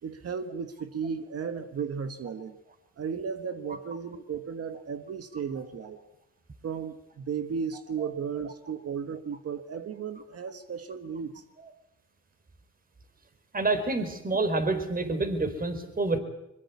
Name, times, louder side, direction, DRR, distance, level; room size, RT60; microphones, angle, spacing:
voice 1, 0.0-2.6 3.0-6.0 6.6-11.4, right 6 dB, 50° right, 9 dB, 1.5 m, -35 dB
voice 2, 13.5-16.2, right 3 dB, 30° right, 9 dB, 4.3 m, -28 dB
22.5 x 22.5 x 8.4 m, 0.89 s
cardioid pair, 90°, 30 cm